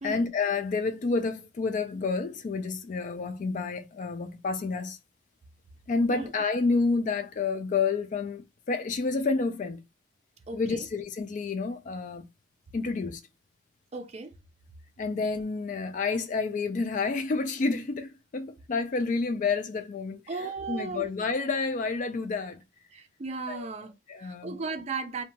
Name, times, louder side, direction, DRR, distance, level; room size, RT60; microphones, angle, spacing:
voice 1, 0.0-5.0 5.9-9.8 10.5-12.3 12.7-13.2 15.0-20.2 20.7-22.6 23.5-23.7 24.1-24.6, left 4 dB, 40° left, 0.3 m, -29 dB
voice 2, 10.5-10.9 13.9-14.3 20.3-21.1 22.9-23.9 24.2-25.2, right 4 dB, 35° right, 0.4 m, -36 dB
2.7 x 2.1 x 2.7 m
head